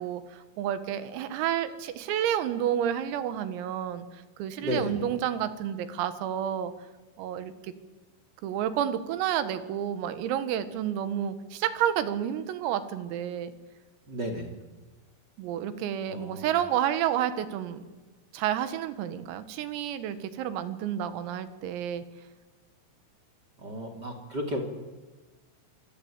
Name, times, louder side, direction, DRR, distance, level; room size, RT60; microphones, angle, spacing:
voice 1, 0.0-4.1 4.4-6.7 7.2-7.7 8.4-13.5 15.4-17.9 18.3-22.0, right 10 dB, 85° right, 11 dB, 4.3 m, -30 dB
voice 2, 4.6-5.0 14.1-14.5 16.1-16.5 23.6-24.6, equal, 25° right, 3 dB, 2.5 m, -33 dB
26.0 x 25.0 x 8.8 m, 1.2 s
omnidirectional pair, 5.9 m